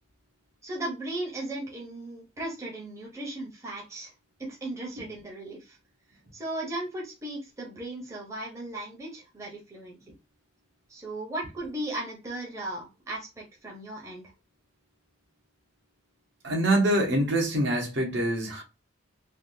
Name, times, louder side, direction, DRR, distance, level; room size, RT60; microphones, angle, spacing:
voice 1, 0.6-4.1 4.4-5.8 6.3-10.0 10.9-14.3, right 1 dB, 15° right, 0.7 m, -36 dB
voice 2, 16.4-18.6, right 1 dB, 60° right, 1.1 m, -25 dB
3.4 x 2.3 x 2.6 m
head